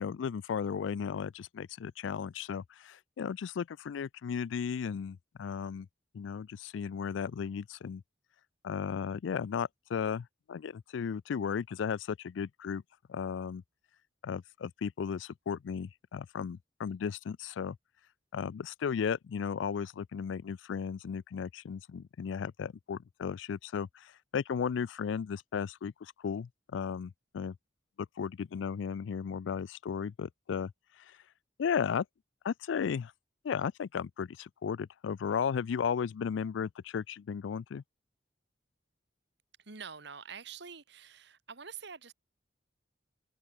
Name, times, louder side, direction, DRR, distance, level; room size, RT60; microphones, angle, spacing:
voice 1, 0.0-5.9 6.1-8.0 8.6-12.8 13.1-13.6 14.2-17.8 18.3-27.6 28.2-30.7 31.0-31.2 31.6-32.1 32.4-33.1 33.4-37.8, left 7 dB, 85° left, 0.4 m, -35 dB
voice 2, 39.6-42.1, right 6 dB, 65° right, 2.0 m, -46 dB
head